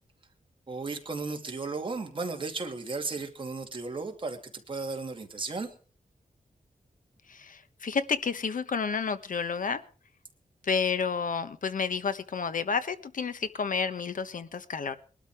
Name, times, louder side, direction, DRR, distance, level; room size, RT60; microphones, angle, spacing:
voice 1, 0.7-5.7, right 3 dB, 35° right, 3 dB, 2.5 m, -35 dB
voice 2, 7.3-9.8 10.6-15.0, left 5 dB, 65° left, 11 dB, 1.2 m, -30 dB
21.5 x 12.5 x 4.8 m, 0.39 s
wide cardioid pair, 165°, 15 cm